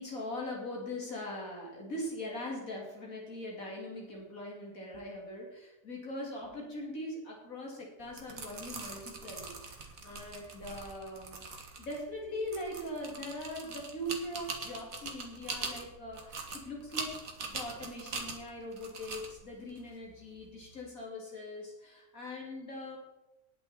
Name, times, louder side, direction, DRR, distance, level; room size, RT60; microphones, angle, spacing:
voice 1, 0.0-17.2 17.5-23.0, left 1 dB, 75° left, -2 dB, 3.3 m, -41 dB
sound 1, 8.0-20.8, right 4 dB, 75° right, 2.1 m, -43 dB
19.5 x 6.5 x 4.4 m, 1.0 s
omnidirectional pair, 1.5 m